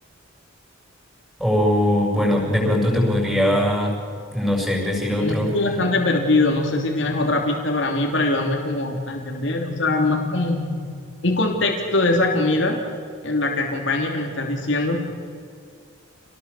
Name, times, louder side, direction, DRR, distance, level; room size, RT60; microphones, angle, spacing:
voice 1, 1.4-4.0 4.3-5.5, left 1 dB, ahead, -1 dB, 7.2 m, -20 dB
sound 1, 1.9-3.9 5.6-7.6 9.3-11.3, left 2 dB, 75° left, 2.0 m, -33 dB
voice 2, 5.2-10.6 11.2-12.8 13.2-15.0, left 2 dB, 60° left, 1 dB, 3.0 m, -22 dB
27.5 x 19.0 x 7.5 m, 2.2 s
head